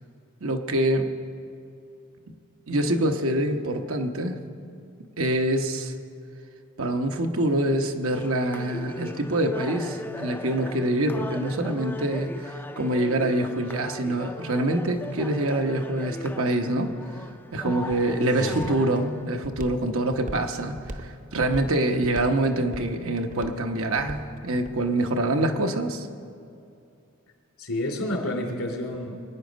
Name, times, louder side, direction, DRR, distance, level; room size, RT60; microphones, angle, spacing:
voice 1, 0.4-1.1 2.3-2.4 2.7-4.4 5.2-5.9 6.8-16.9 17.5-26.1, right 1 dB, 70° right, 5 dB, 1.1 m, -25 dB
sound 1, 8.1-19.2, left 1 dB, 10° left, 0.4 m, -39 dB
Walk footsteps, 16.7-24.8, right 1 dB, 35° right, 0.7 m, -40 dB
voice 2, 18.4-18.7 27.6-29.2, left 1 dB, 85° left, 2 dB, 2.8 m, -30 dB
23.0 x 9.5 x 5.2 m, 2.5 s
head